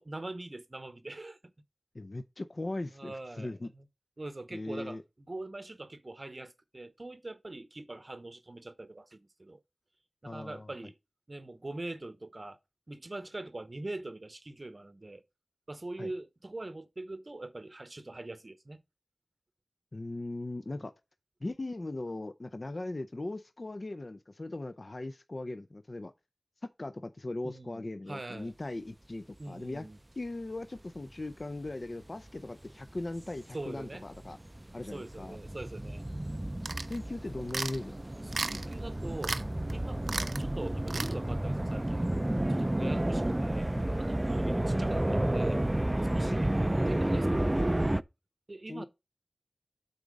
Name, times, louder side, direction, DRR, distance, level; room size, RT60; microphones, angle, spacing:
voice 1, 0.0-1.4 2.9-3.8 4.2-5.0 5.3-9.6 10.2-11.0 11.3-12.6 12.9-15.2 15.7-18.8 20.7-20.9 27.4-27.8 28.1-28.5 29.4-30.0 33.5-34.0 34.9-36.0 38.3-39.4 39.7-42.1 42.5-45.6 46.1-47.8 48.5-48.9, right 2 dB, 45° right, 0.7 m, -43 dB
voice 2, 1.9-3.7 4.5-5.0 10.3-10.7 16.0-16.1 19.9-20.9 21.4-26.1 26.6-29.9 30.2-34.4 34.7-35.4 36.9-38.0 42.8-43.1 44.5-44.6 46.2-46.3 48.7-48.9, left 2 dB, 50° left, 0.5 m, -39 dB
sound 1, 31.4-31.7 32.3-48.0, right 1 dB, 25° right, 0.4 m, -31 dB
sound 2, 36.7-37.0 37.5-37.8 38.3-38.7 39.2-39.4 39.7-39.8 40.1-40.4 40.9-41.1, right 3 dB, 85° right, 0.6 m, -34 dB
8.2 x 4.1 x 5.0 m
wide cardioid pair, 50°, 0 cm